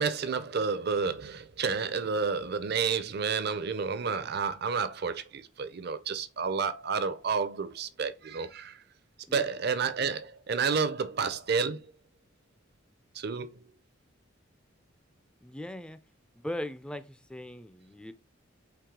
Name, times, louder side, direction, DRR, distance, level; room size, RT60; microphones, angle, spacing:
voice 1, 0.0-8.8 9.3-11.9 13.1-13.7, right 5 dB, 55° right, 0.5 m, -30 dB
voice 2, 15.4-16.0 16.4-18.1, left 1 dB, 5° left, 0.3 m, -39 dB
4.7 x 3.1 x 3.7 m
head